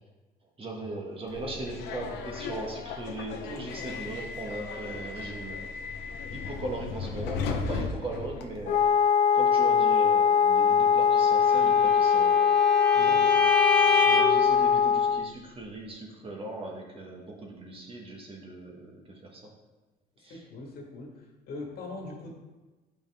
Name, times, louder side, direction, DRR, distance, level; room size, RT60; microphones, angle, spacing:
voice 1, 0.6-5.7 6.3-8.9 9.3-12.6 13.0-13.3 13.6-19.5 20.2-20.4, right 2 dB, 35° right, 0 dB, 1.5 m, -39 dB
Subway metro underground, 1.3-8.9, left 4 dB, 85° left, 0.8 m, -36 dB
Wind instrument woodwind instrument, 8.7-15.3, left 7 dB, 45° left, 0.4 m, -21 dB
Bowed string instrument, 11.5-14.5, left 3 dB, 5° left, 0.8 m, -28 dB
voice 2, 12.9-13.3 13.7-14.2 20.3-22.3, left 2 dB, 65° left, 0 dB, 1.7 m, -42 dB
7.3 x 5.3 x 3.5 m, 1.2 s
cardioid pair, 110°, 17 cm